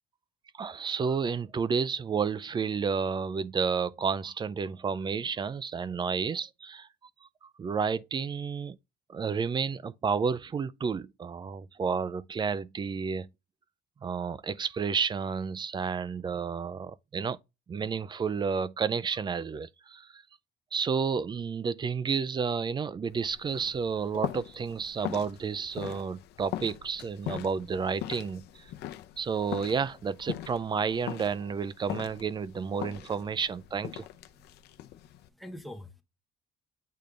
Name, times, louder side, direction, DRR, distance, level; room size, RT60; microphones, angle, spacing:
voice 1, 0.5-6.9 7.2-8.8 9.1-13.3 14.0-17.4 17.7-20.2 20.7-28.7 29.2-34.1, right 6 dB, 25° right, 0.4 m, -31 dB
sound 1, 23.1-35.3, left 13 dB, 75° left, 0.7 m, -41 dB
voice 2, 34.3-36.0, left 1 dB, ahead, 1.4 m, -47 dB
8.5 x 3.3 x 3.8 m
cardioid pair, 110°, 17 cm